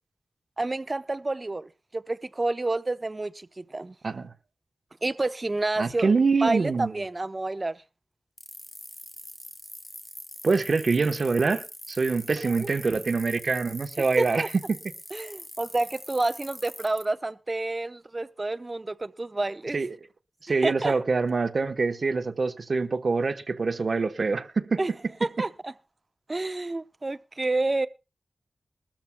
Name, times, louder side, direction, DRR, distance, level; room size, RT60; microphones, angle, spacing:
voice 1, 0.6-3.9 5.0-6.1 6.4-7.8 12.4-12.7 14.2-14.5 15.1-19.8 20.6-21.0 24.8-24.9 25.2-25.7 26.3-27.9, right 2 dB, 40° right, 0.7 m, -29 dB
voice 2, 5.8-6.9 10.4-14.5 19.7-19.9 20.4-24.8, right 4 dB, 70° right, 1.0 m, -25 dB
sound 1, 8.4-17.0, left 1 dB, 20° left, 3.7 m, -43 dB
21.0 x 13.5 x 2.2 m
cardioid pair, 50°, 0 cm